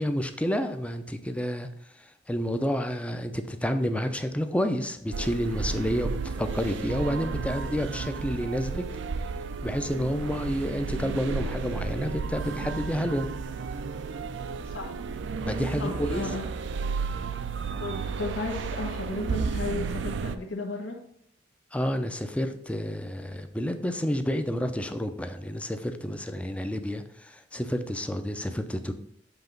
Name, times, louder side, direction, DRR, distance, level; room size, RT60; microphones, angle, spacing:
voice 1, 0.0-1.7 2.0-8.8 9.6-13.3 15.4-16.2 21.7-28.9, equal, 5° left, 7 dB, 0.5 m, -29 dB
sound 1, 5.1-20.4, right 4 dB, 65° right, 0.4 m, -33 dB
voice 2, 15.8-16.4 17.8-21.0, left 3 dB, 75° left, 1 dB, 1.4 m, -34 dB
7.9 x 3.0 x 5.2 m, 0.76 s
head